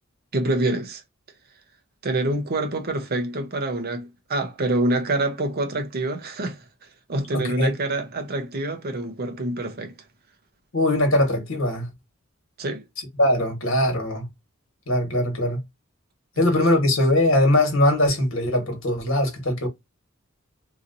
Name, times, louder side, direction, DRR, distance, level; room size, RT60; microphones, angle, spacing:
voice 1, 0.3-1.0 2.0-6.6 7.1-9.9 12.6-12.8 16.4-16.6, right 2 dB, 50° right, 0.8 m, -26 dB
voice 2, 7.3-7.7 10.7-11.9 13.2-14.2 14.9-15.6 16.4-19.7, left 1 dB, 70° left, 1.4 m, -21 dB
3.0 x 2.6 x 2.6 m
head